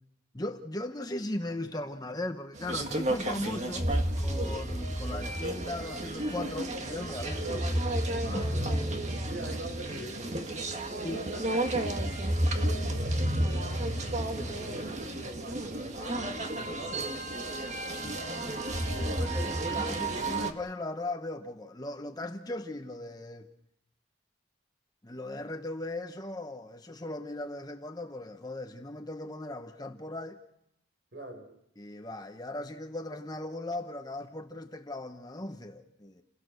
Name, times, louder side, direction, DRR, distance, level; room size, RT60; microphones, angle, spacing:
voice 1, 0.3-3.9 4.2-7.4 8.3-8.4 11.0-11.2 14.3-14.6 19.0-23.5 25.0-30.4 31.8-36.2, left 1 dB, 20° left, 1.1 m, -38 dB
sound 1, 2.5-20.5, right 1 dB, 35° right, 1.7 m, -31 dB
voice 2, 6.9-7.7 8.2-10.3 10.9-11.7 12.0-14.2 14.5-17.8 18.9-19.7 31.1-31.5, right 1 dB, 55° right, 5.2 m, -44 dB
30.0 x 17.5 x 6.6 m
head